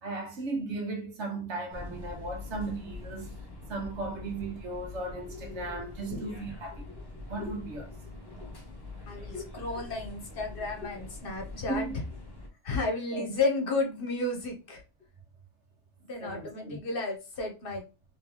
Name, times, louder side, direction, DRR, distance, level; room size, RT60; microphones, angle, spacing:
voice 1, 0.0-3.3 3.7-6.9 7.3-7.9 11.7-12.0 13.1-13.3 16.2-16.8, right 2 dB, 75° right, 1.3 m, -36 dB
sound 1, 1.7-12.5, left 3 dB, 25° left, 0.7 m, -44 dB
voice 2, 5.3-6.3 7.4-7.6 8.3-8.5 9.1-11.8 12.6-14.8 16.0-17.8, left 3 dB, 55° left, 1.0 m, -33 dB
3.5 x 3.0 x 2.9 m
omnidirectional pair, 1.2 m